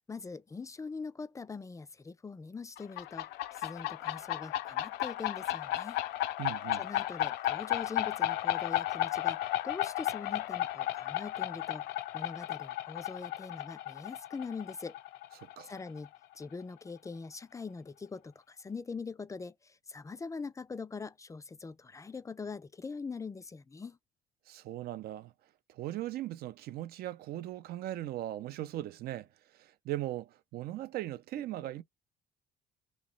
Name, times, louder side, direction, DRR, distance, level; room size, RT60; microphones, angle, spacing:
voice 1, 0.0-6.0 6.7-11.8 12.1-14.9 15.6-16.1 16.4-24.0, left 4 dB, 20° left, 0.4 m, -43 dB
sound 1, 2.8-16.2, left 13 dB, 85° left, 0.5 m, -34 dB
voice 2, 6.4-6.8 15.4-15.7 24.5-25.3 25.7-29.3 29.5-31.8, right 14 dB, 65° right, 0.5 m, -39 dB
3.0 x 2.9 x 3.8 m
cardioid pair, 110°, 17 cm